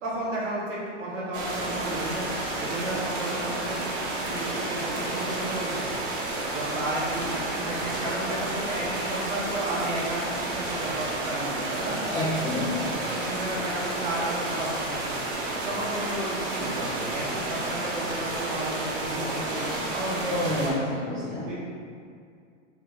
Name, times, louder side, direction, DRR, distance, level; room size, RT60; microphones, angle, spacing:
voice 1, 0.0-3.8 4.2-5.8 6.3-12.0 13.1-15.1 15.6-20.7 21.4-21.6, right 1 dB, 75° right, -5 dB, 1.2 m, -33 dB
sound 1, 1.3-20.7, right 2 dB, 45° right, 0.7 m, -31 dB
voice 2, 12.1-13.0 20.2-21.5, left 1 dB, 10° left, -14 dB, 0.4 m, -28 dB
3.4 x 2.6 x 3.8 m, 2.2 s
supercardioid pair, 170°, 37 cm